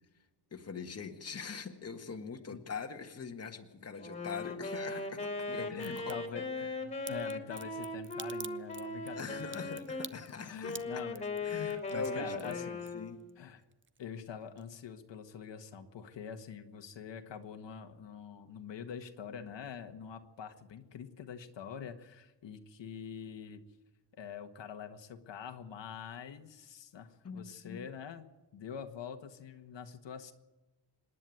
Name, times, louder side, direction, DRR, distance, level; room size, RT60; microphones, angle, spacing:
voice 1, 0.5-6.2 9.1-10.8 11.4-13.2 27.2-27.9, left 5 dB, 35° left, 5 dB, 1.6 m, -42 dB
Wind instrument woodwind instrument, 4.0-10.1 10.6-13.3, left 2 dB, 15° left, 3.0 m, -39 dB
voice 2, 5.6-9.9 10.4-12.8 13.4-13.6 14.0-23.6 24.1-28.3 28.5-30.3, left 7 dB, 80° left, 6 dB, 1.7 m, -45 dB
Crack, 5.7-6.1 7.1-13.3 13.6-14.3 14.6-14.7, right 6 dB, 30° right, 0.7 m, -47 dB
26.0 x 10.5 x 9.4 m, 1.1 s
wide cardioid pair, 140°, 43 cm